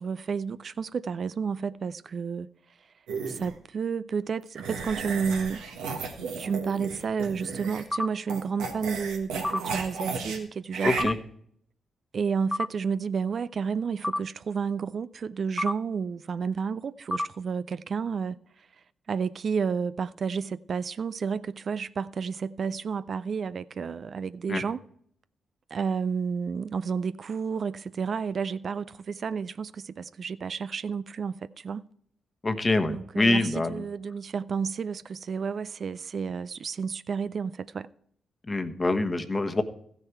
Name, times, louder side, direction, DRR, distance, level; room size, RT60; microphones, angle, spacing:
voice 1, 0.0-2.5 3.3-5.6 6.4-11.1 12.1-18.4 19.1-24.8 25.7-31.8 32.9-37.9, right 6 dB, 55° right, 0.4 m, -31 dB
sound 1, 3.1-3.5 4.6-7.9 8.3-10.4 10.7-11.0, right 5 dB, 85° right, 1.5 m, -34 dB
sound 2, 7.9-8.1 9.4-9.6 11.0-11.2 12.5-12.7 14.0-14.2 15.6-15.8 17.1-17.3, left 1 dB, 15° left, 0.4 m, -28 dB
voice 2, 10.8-11.2 24.5-24.6 32.4-33.8 38.5-39.6, left 2 dB, 30° left, 1.2 m, -25 dB
14.5 x 6.5 x 4.6 m
hypercardioid pair, 45°, 0 cm